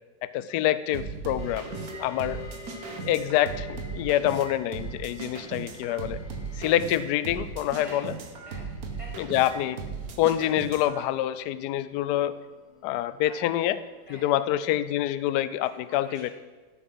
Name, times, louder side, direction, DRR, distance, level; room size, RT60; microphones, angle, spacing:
voice 1, 0.2-2.5 3.0-6.2 6.5-8.1 9.2-9.8 10.2-12.4 12.8-13.8 14.1-16.3, left 13 dB, 70° left, 15 dB, 1.0 m, -26 dB
sound 1, 0.9-11.0, right 4 dB, 50° right, 1.5 m, -37 dB
sound 2, 1.4-14.8, left 1 dB, 25° left, 1.8 m, -49 dB
voice 2, 1.9-2.2 7.8-8.1 8.4-9.3 13.2-13.7 14.1-14.4 15.7-16.3, equal, 15° right, -3 dB, 2.2 m, -47 dB
14.0 x 8.9 x 5.5 m, 1.3 s
omnidirectional pair, 2.2 m